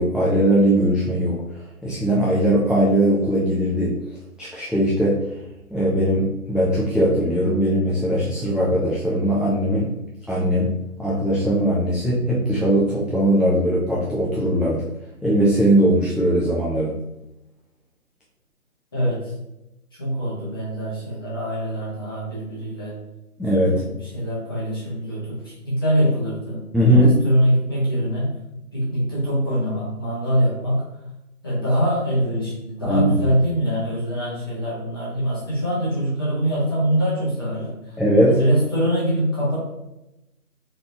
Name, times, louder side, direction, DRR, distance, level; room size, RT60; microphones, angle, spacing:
voice 1, 0.0-4.0 4.4-5.3 5.7-9.9 10.3-14.8 15.2-17.0 23.4-23.8 26.7-27.2 32.8-33.3 38.0-38.4, equal, ahead, -7 dB, 0.3 m, -20 dB
voice 2, 18.9-19.3 19.9-23.0 23.6-28.3 28.7-30.8 31.4-38.0 38.3-39.6, equal, 15° left, -9 dB, 0.9 m, -23 dB
3.9 x 3.3 x 2.7 m, 0.91 s
figure-of-eight pair, 155°, 45 cm